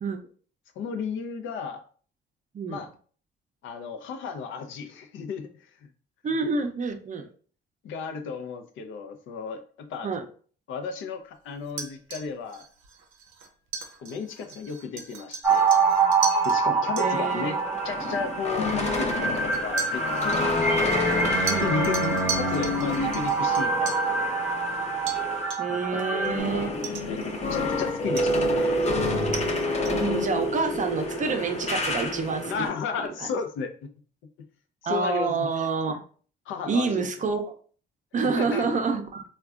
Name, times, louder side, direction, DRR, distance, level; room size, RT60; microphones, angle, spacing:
voice 1, 0.8-1.8 2.7-2.9 3.6-5.7 7.8-10.1 10.7-12.6 14.0-15.7 16.4-17.6 17.8-20.4 21.6-22.0 22.3-24.0 25.7-27.2 27.5-28.9 32.5-33.9 34.8-35.3 36.5-37.1 38.2-38.6, left 5 dB, 80° left, 7 dB, 0.5 m, -34 dB
voice 2, 6.2-7.3 10.0-10.3 17.0-17.7 21.5-22.2 25.6-26.7 29.9-32.7 33.2-33.3 34.8-36.0 36.7-37.6 38.1-39.2, right 4 dB, 40° right, 6 dB, 0.5 m, -28 dB
sound 1, 11.7-16.6 17.0-17.1 18.1-18.2 19.5-24.1 25.1-25.2 25.5-25.8 26.2-26.3 26.8-27.7 28.2-30.1, right 5 dB, 90° right, 0.5 m, -37 dB
sound 2, 15.4-26.4, right 4 dB, 10° right, 0.8 m, -26 dB
sound 3, 17.1-25.5 25.8-32.7, left 1 dB, 35° left, 0.6 m, -28 dB
3.5 x 2.2 x 2.4 m, 0.44 s
cardioid pair, 90°, 20 cm